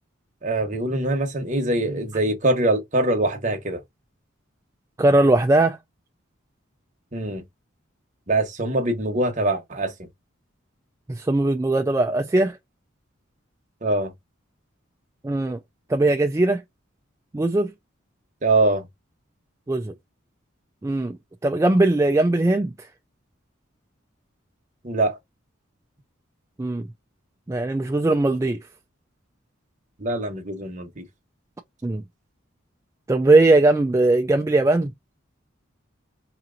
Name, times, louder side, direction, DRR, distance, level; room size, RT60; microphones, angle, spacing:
voice 1, 0.4-3.8 7.1-7.4 8.3-10.1 13.8-14.1 18.4-18.9 24.8-25.2 30.0-31.1, right 2 dB, 40° right, 1.1 m, -23 dB
voice 2, 5.0-5.8 11.1-12.6 15.2-15.6 15.9-16.6 17.3-17.7 19.7-19.9 20.8-22.9 26.6-26.9 27.5-28.6 31.8-32.0 33.1-34.9, right 2 dB, 15° right, 0.3 m, -20 dB
4.8 x 2.9 x 2.6 m
head